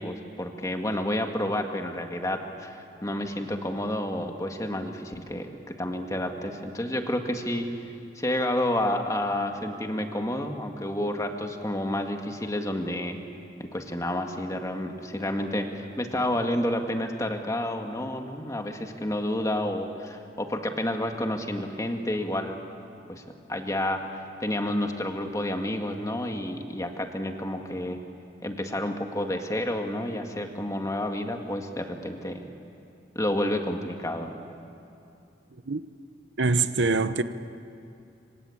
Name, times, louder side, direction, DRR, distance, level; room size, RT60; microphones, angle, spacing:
voice 1, 0.0-7.7 8.2-13.2 13.6-22.6 23.1-23.2 23.5-28.0 28.4-32.4 33.2-34.3, left 1 dB, 20° left, 1.9 m, -30 dB
voice 2, 36.4-37.2, right 3 dB, 85° right, 0.9 m, -23 dB
26.0 x 25.5 x 8.5 m
head